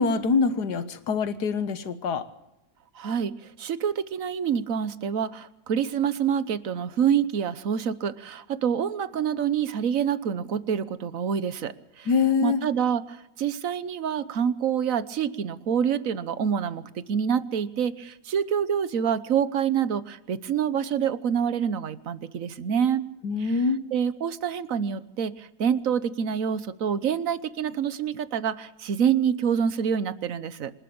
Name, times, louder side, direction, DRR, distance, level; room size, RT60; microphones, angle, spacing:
voice 1, 0.0-2.3 12.1-12.6 23.2-23.8, left 5 dB, 90° left, 12 dB, 1.8 m, -24 dB
voice 2, 2.9-12.1 12.4-23.0 23.4-23.6 23.9-30.7, right 8 dB, 60° right, 15 dB, 1.3 m, -27 dB
26.5 x 12.0 x 8.6 m, 0.90 s
omnidirectional pair, 1.7 m